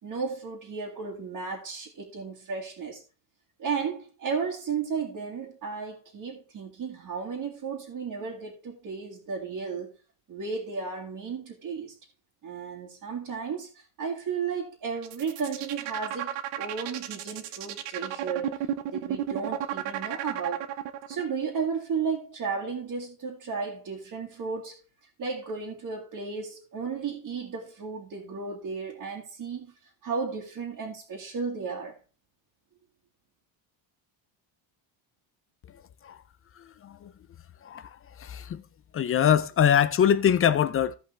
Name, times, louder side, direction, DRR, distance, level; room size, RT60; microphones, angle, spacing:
voice 1, 0.0-3.0 3.6-9.9 10.3-11.9 12.4-18.6 18.9-20.6 21.1-24.7 25.2-29.7 30.0-32.0, right 5 dB, 45° right, 2.1 m, -34 dB
sound 1, 15.0-21.2, right 11 dB, 90° right, 1.0 m, -33 dB
voice 2, 38.2-38.6 38.9-41.0, left 9 dB, 30° left, 0.4 m, -23 dB
16.0 x 5.4 x 3.2 m
cardioid pair, 135°, 49 cm